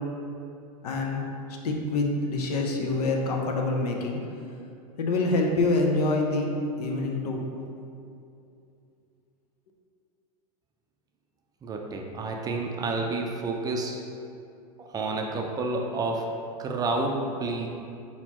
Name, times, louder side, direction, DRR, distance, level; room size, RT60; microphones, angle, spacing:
voice 1, 0.8-1.2 1.6-4.2 5.0-6.5 6.8-7.4, left 2 dB, 85° left, 1 dB, 0.7 m, -26 dB
voice 2, 11.6-14.0 14.8-16.3 16.6-17.7, right 3 dB, 20° right, 1 dB, 0.4 m, -29 dB
4.2 x 4.1 x 2.9 m, 2.6 s
hypercardioid pair, 115°, 19 cm